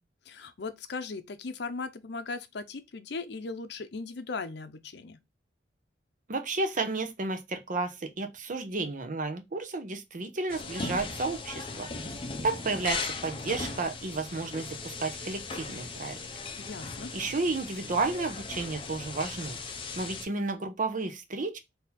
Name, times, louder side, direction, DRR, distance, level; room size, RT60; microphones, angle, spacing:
voice 1, 0.3-5.2 16.6-17.1, left 4 dB, 70° left, 0.6 m, -38 dB
voice 2, 6.3-11.9 12.4-16.2 17.1-19.6 20.0-21.6, right 3 dB, 50° right, 0.7 m, -32 dB
sound 1, 10.5-20.3, left 3 dB, 30° left, 0.7 m, -38 dB
3.9 x 2.8 x 4.1 m
head